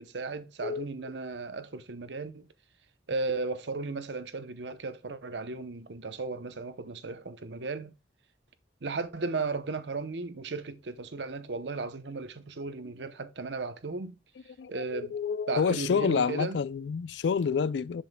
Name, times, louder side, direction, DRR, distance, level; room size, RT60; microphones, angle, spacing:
voice 1, 0.0-2.5 3.1-7.9 8.8-14.2 14.7-15.2 15.5-16.6, right 3 dB, 80° right, 0.8 m, -35 dB
voice 2, 14.6-18.0, left 6 dB, 80° left, 0.4 m, -28 dB
7.4 x 7.1 x 2.2 m
head